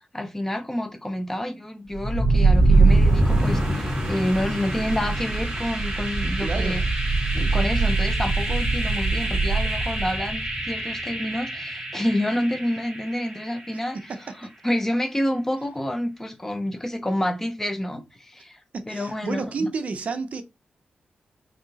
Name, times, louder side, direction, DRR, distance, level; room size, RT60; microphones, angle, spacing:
voice 1, 0.1-6.8 7.3-10.4 10.7-14.0 14.4-18.6 18.9-19.7, left 1 dB, 10° left, 0.6 m, -28 dB
sound 1, 1.9-13.8, right 2 dB, 25° right, 2.3 m, -23 dB
voice 2, 6.4-6.8 14.1-14.2 18.7-20.4, right 4 dB, 50° right, 0.6 m, -30 dB
6.4 x 2.7 x 2.9 m
wide cardioid pair, 160°, 3 cm